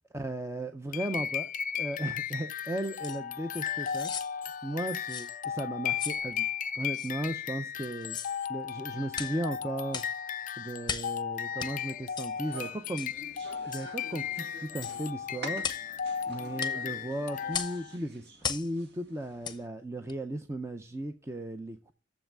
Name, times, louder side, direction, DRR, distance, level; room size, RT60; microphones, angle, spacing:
voice 1, 0.1-1.5 1.8-4.1 4.6-6.5 6.7-8.2 8.5-10.0 10.6-13.1 13.7-15.7 16.3-21.9, right 1 dB, 15° right, 0.5 m, -36 dB
sound 1, 0.9-18.0, left 8 dB, 45° left, 0.4 m, -35 dB
sound 2, 3.0-3.2 3.9-4.3 5.1-5.3 6.0-6.2 6.9-7.1 8.0-8.4 9.1-9.4 9.9-10.2 10.8-11.2 11.6-11.7 12.2-12.3 13.0-13.2 13.7-13.9 14.8-15.0 15.6-15.9 16.6-16.8 17.5-17.8 18.4-18.7 19.4-19.6 20.1-20.2, left 7 dB, 25° left, 0.8 m, -36 dB
sound 3, 12.4-19.7, right 1 dB, 60° right, 1.9 m, -48 dB
7.3 x 5.6 x 7.5 m
head